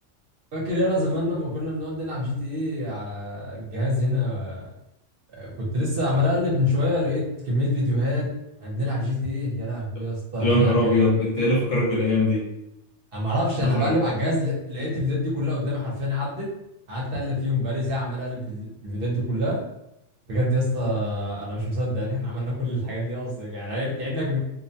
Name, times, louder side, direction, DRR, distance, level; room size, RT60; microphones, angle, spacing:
voice 1, 0.5-4.7 5.3-8.3 8.6-11.0 13.1-16.5 16.9-19.6 20.3-24.4, left 1 dB, 55° right, -4 dB, 0.8 m, -26 dB
voice 2, 10.4-12.4 13.6-13.9, left 1 dB, 80° left, -5 dB, 1.1 m, -21 dB
2.4 x 2.1 x 2.6 m, 0.86 s
omnidirectional pair, 1.3 m